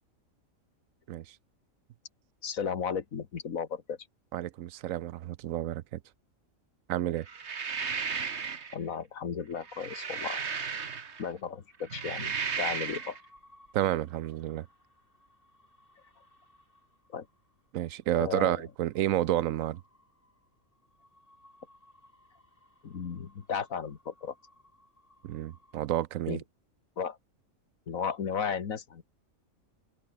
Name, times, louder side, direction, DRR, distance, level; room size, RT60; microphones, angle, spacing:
voice 1, 2.4-4.0 8.7-10.4 11.2-13.2 17.1-17.3 18.2-18.6 22.8-24.3 26.3-26.4 27.0-27.2 27.9-29.0, left 6 dB, 80° left, 1.9 m, -34 dB
voice 2, 4.3-6.0 6.9-7.3 13.7-14.7 17.7-19.8 25.2-26.4, right 13 dB, 75° right, 1.0 m, -30 dB
sound 1, 7.3-8.8 9.6-11.3 11.8-13.2, right 6 dB, 55° right, 1.7 m, -34 dB
sound 2, 9.9-26.1, left 1 dB, 40° left, 8.0 m, -63 dB
omnidirectional pair, 1.4 m